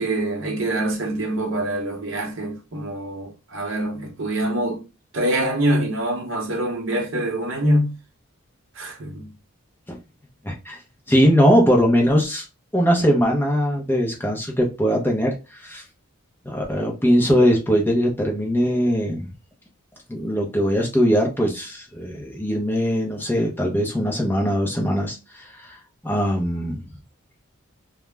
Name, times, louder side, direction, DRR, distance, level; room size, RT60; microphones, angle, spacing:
voice 1, 0.0-4.9 5.1-7.9 8.8-9.3, right 1 dB, 60° right, 0.7 m, -25 dB
voice 2, 10.4-10.8 11.1-12.5 12.7-15.8 16.5-19.3 20.1-25.8 26.0-26.8, equal, 10° left, 0.5 m, -20 dB
2.3 x 2.0 x 3.2 m
head